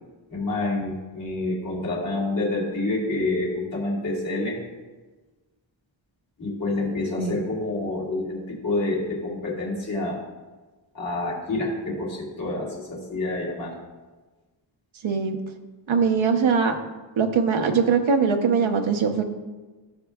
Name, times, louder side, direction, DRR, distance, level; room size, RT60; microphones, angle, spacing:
voice 1, 0.3-4.6 6.4-10.2 10.9-13.7, left 2 dB, 45° left, -4 dB, 2.8 m, -28 dB
voice 2, 15.0-15.4 15.9-16.8 17.2-19.3, right 5 dB, 85° right, 5 dB, 0.9 m, -21 dB
15.0 x 6.5 x 2.4 m, 1.3 s
wide cardioid pair, 175°, 46 cm